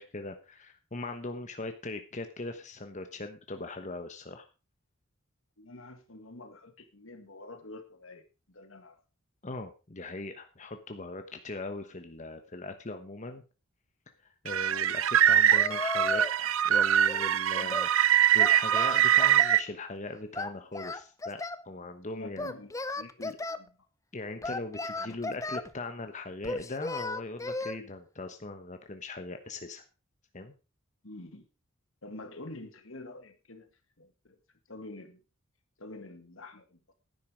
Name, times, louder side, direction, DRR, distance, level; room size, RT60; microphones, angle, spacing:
voice 1, 0.0-4.5 9.4-13.4 14.4-22.5 23.2-23.4 24.1-29.8 30.3-30.5, left 2 dB, 35° left, 7 dB, 1.1 m, -40 dB
voice 2, 5.6-9.0 17.6-17.8 22.2-23.1 23.5-23.7 24.9-25.2 31.0-31.5 32.0-33.7 34.0-34.4 34.7-35.2 35.8-36.9, left 2 dB, 75° left, 8 dB, 2.0 m, -47 dB
sound 1, 14.5-19.6, right 10 dB, 85° right, 0.6 m, -23 dB
Singing, 15.5-16.4 16.7-17.9 18.4-19.6 20.3-21.6 22.4-23.6 24.4-25.7 26.4-27.8, left 3 dB, 15° left, 0.6 m, -35 dB
10.5 x 9.4 x 5.0 m, 0.32 s
head